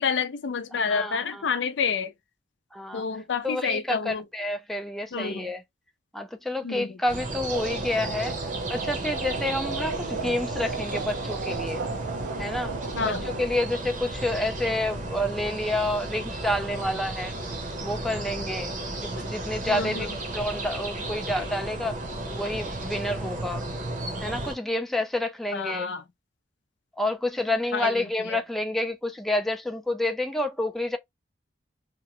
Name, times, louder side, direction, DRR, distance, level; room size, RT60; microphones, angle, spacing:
voice 1, 0.0-2.1 2.9-4.2 5.1-5.5 6.6-7.0 13.0-13.2 19.7-20.2 25.5-26.0 27.7-28.4, left 5 dB, 80° left, 0.5 m, -29 dB
voice 2, 0.7-1.5 2.7-3.0 3.4-5.6 6.1-8.4 8.7-11.8 12.4-17.4 17.8-18.7 19.0-22.0 22.3-23.7 24.2-25.9 27.0-31.0, left 1 dB, ahead, 0.4 m, -29 dB
sound 1, 7.1-24.6, right 2 dB, 45° right, 0.7 m, -34 dB
sound 2, 7.5-13.5, right 4 dB, 80° right, 0.4 m, -34 dB
2.9 x 2.1 x 2.8 m
head